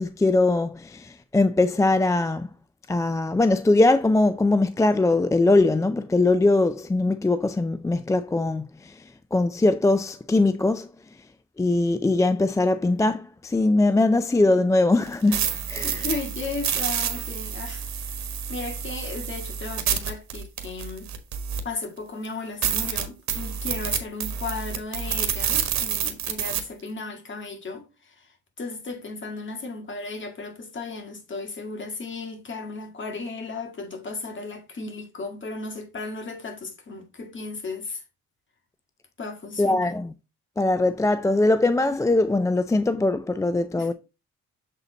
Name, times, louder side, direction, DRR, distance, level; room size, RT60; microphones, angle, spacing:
voice 1, 0.0-2.5 2.9-9.0 9.3-10.9 11.6-15.4 15.7-16.1 39.6-40.1 40.6-43.9, left 2 dB, 10° left, 0.3 m, -21 dB
sound 1, 15.1-21.8 22.2-22.3 22.6-26.6, right 8 dB, 65° right, 1.4 m, -28 dB
voice 2, 15.8-18.1 18.5-21.1 21.6-28.3 28.6-38.0 39.2-39.9 43.8-43.9, left 3 dB, 40° left, 2.0 m, -35 dB
7.3 x 4.0 x 4.0 m
cardioid pair, 90°, 30 cm